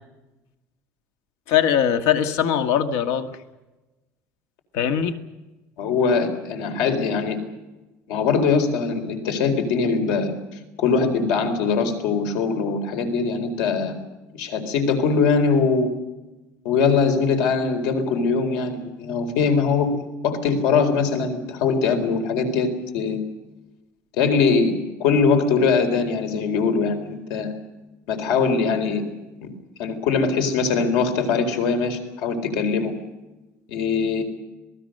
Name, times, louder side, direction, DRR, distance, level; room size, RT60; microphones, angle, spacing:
voice 1, 1.5-3.3 4.7-5.2, left 9 dB, 75° left, 8 dB, 1.8 m, -21 dB
voice 2, 5.8-7.4 8.1-10.3 10.8-14.0 14.3-15.9 16.6-20.0 20.2-22.7 22.9-23.2 24.2-24.7 25.0-27.5 28.1-29.0 29.8-32.9 33.7-34.2, left 5 dB, 90° left, 7 dB, 4.3 m, -21 dB
27.0 x 19.5 x 6.6 m, 1.1 s
cardioid pair, 175°, 6 cm